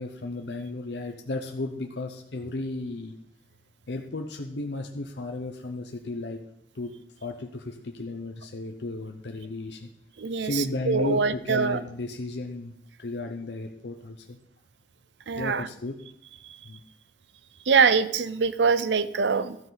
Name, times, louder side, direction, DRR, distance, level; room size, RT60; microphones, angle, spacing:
voice 1, 0.0-3.2 3.9-6.4 6.7-6.9 7.2-9.9 10.4-12.7 13.0-14.4 15.4-16.0 16.6-16.8, left 2 dB, 75° left, 3 dB, 0.8 m, -34 dB
voice 2, 10.2-11.8 15.3-15.7 17.7-19.6, right 5 dB, 85° right, 14 dB, 0.6 m, -23 dB
13.0 x 9.5 x 4.0 m, 0.74 s
head